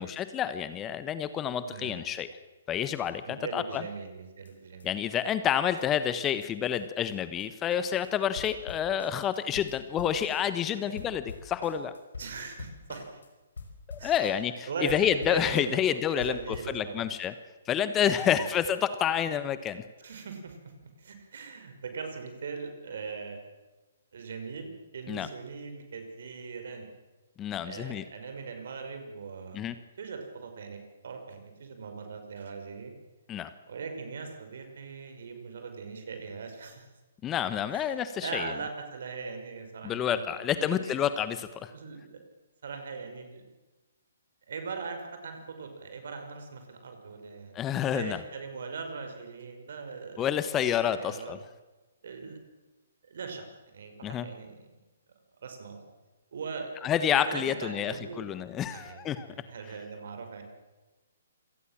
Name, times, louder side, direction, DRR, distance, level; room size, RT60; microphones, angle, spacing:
voice 1, 0.0-2.3 2.7-3.8 4.8-11.9 13.9-17.3 17.7-19.8 25.1-25.3 27.4-28.0 29.5-29.7 33.3-33.5 37.2-38.5 39.8-41.7 47.5-48.2 50.2-51.4 54.0-54.3 56.8-59.3, left 9 dB, 20° left, 12 dB, 1.3 m, -29 dB
voice 2, 1.6-2.1 3.3-4.9 10.7-11.0 12.2-13.2 14.0-14.3 14.7-17.1 18.1-18.5 20.0-20.7 21.0-23.4 24.1-26.9 27.6-33.0 33.7-36.9 37.7-41.0 41.7-42.2 42.6-43.5 44.5-47.6 47.9-51.4 52.0-52.4 53.1-54.8 55.4-55.8 56.3-56.9 57.3-58.3 58.7-60.4, right 5 dB, 60° right, 6 dB, 5.7 m, -40 dB
sound 1, 4.5-4.6 4.8-4.9 5.1-5.2 5.4-5.5 5.8-5.9 6.1-6.2 6.4-6.5 6.7-6.8 7.1-7.2 7.4-7.8 8.0-8.1 8.4-10.7 11.0-13.3 13.6-14.6 14.9-15.9 16.2-16.8, left 4 dB, 70° left, 5.2 m, -45 dB
27.0 x 18.5 x 7.5 m, 1.2 s
figure-of-eight pair, 130°, 0 cm